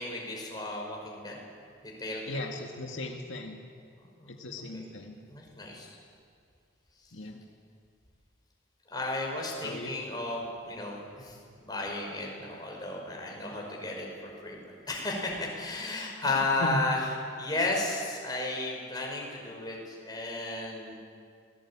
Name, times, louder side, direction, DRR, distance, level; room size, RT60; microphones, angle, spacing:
voice 1, 0.0-1.4 1.8-2.5 4.0-4.3 4.7-4.9 5.3-5.9 8.9-20.9, left 2 dB, 20° left, -1 dB, 5.3 m, -34 dB
voice 2, 2.3-3.6 4.4-5.2 7.1-7.4 9.6-9.9 16.6-16.8, left 1 dB, 75° left, 1 dB, 2.0 m, -37 dB
26.0 x 19.5 x 8.8 m, 2.2 s
head